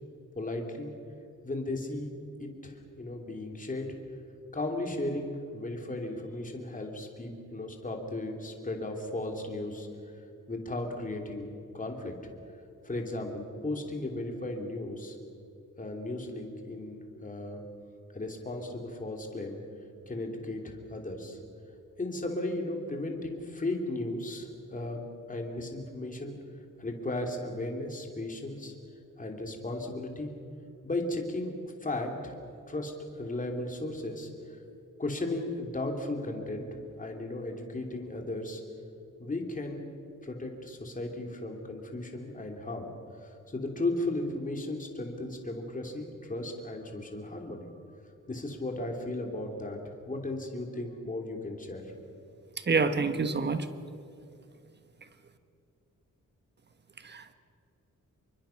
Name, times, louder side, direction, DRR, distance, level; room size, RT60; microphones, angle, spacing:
voice 1, 0.3-0.9 1.4-2.1 2.4-3.9 4.5-9.9 10.5-11.5 11.7-12.2 12.8-15.2 15.8-17.6 18.1-19.6 20.1-21.4 22.0-25.0 25.3-26.3 26.8-28.7 29.2-30.3 30.8-31.5 31.8-32.3 32.7-34.3 35.0-36.7 37.0-38.6 39.2-39.8 40.2-42.9 43.2-47.6 48.3-49.8 50.0-51.9, left 2 dB, 25° left, 2 dB, 3.1 m, -35 dB
voice 2, 52.7-53.7 57.0-57.3, right 4 dB, 35° right, 10 dB, 1.3 m, -27 dB
28.0 x 24.0 x 5.9 m, 2.6 s
wide cardioid pair, 160°, 31 cm